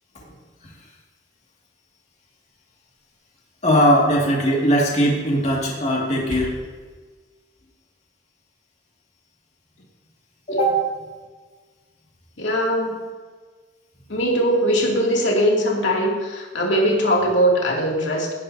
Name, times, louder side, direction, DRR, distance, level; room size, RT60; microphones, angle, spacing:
voice 1, 3.6-6.5 10.5-10.8, equal, 40° left, -2 dB, 2.3 m, -19 dB
sound 1, 5.9-6.9, right 1 dB, 75° right, 2.9 m, -37 dB
voice 2, 12.4-13.0 14.1-18.3, equal, 85° left, -2 dB, 2.6 m, -20 dB
17.5 x 11.0 x 2.8 m, 1.4 s
head